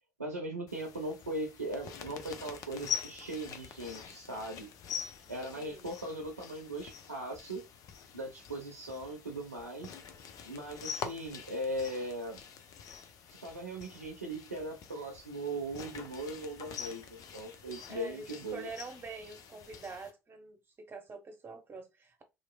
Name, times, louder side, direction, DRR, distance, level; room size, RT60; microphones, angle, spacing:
voice 1, 0.2-4.7 5.3-7.6 8.1-10.0 10.4-12.4 13.3-18.7, right 1 dB, 85° right, 0.5 m, -39 dB
sound 1, 0.7-20.1, left 8 dB, 50° left, 0.5 m, -45 dB
voice 2, 5.6-5.9 17.9-22.2, right 4 dB, 25° right, 0.9 m, -45 dB
2.8 x 2.5 x 2.2 m
figure-of-eight pair, 60°, 8 cm